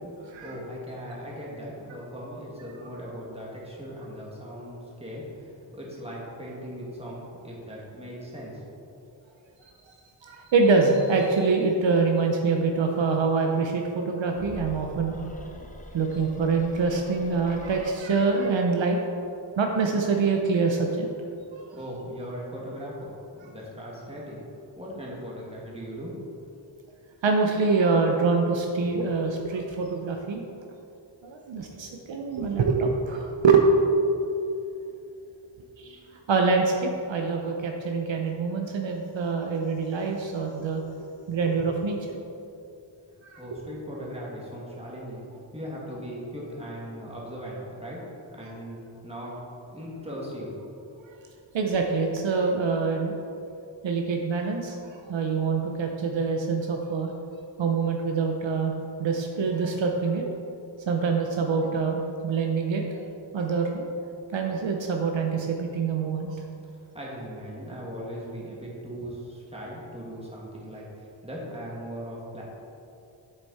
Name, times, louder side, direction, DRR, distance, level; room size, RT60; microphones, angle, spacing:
voice 1, 0.4-8.9 21.7-24.4 24.8-26.1 43.4-45.3 45.5-48.0 48.3-49.4 49.7-50.5 51.4-51.5 66.7-72.4, equal, 15° right, -5 dB, 2.0 m, -39 dB
voice 2, 10.2-15.2 15.5-15.6 15.9-19.0 19.6-21.1 27.2-30.4 31.2-33.6 35.8-36.0 36.3-40.8 41.3-42.2 43.2-43.4 51.5-53.2 53.8-57.1 57.6-58.7 59.0-60.2 60.9-63.0 63.3-63.8 64.3-66.4, right 4 dB, 70° right, 2 dB, 0.8 m, -25 dB
sound 1, 14.3-17.8, left 1 dB, 15° left, 0.7 m, -44 dB
8.1 x 6.7 x 4.2 m, 2.7 s
wide cardioid pair, 125°, 47 cm